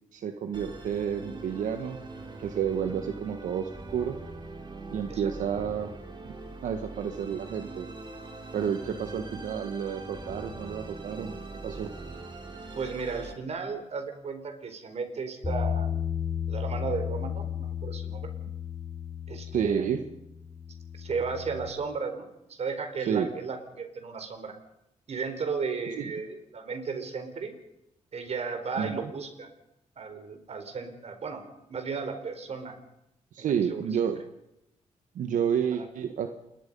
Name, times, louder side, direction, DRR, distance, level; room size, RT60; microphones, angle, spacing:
voice 1, 0.1-2.0 2.4-4.2 4.9-5.9 6.6-7.9 8.5-11.4 11.6-11.9 19.5-20.0 23.1-23.3 26.0-26.1 28.8-29.0 33.3-34.2 35.1-36.3, right 8 dB, 90° right, 7 dB, 1.4 m, -30 dB
Musical instrument, 0.5-13.3, right 3 dB, 35° right, 3.7 m, -42 dB
voice 2, 12.7-16.0 16.5-18.3 19.3-19.9 20.9-24.5 25.1-27.5 28.1-29.5 30.0-31.4 31.7-32.7 33.4-33.9 35.8-35.9, right 5 dB, 55° right, 7 dB, 4.2 m, -34 dB
Bass guitar, 15.4-21.7, left 8 dB, 25° left, 4.0 m, -34 dB
28.0 x 21.5 x 5.4 m, 0.84 s
cardioid pair, 100°, 13 cm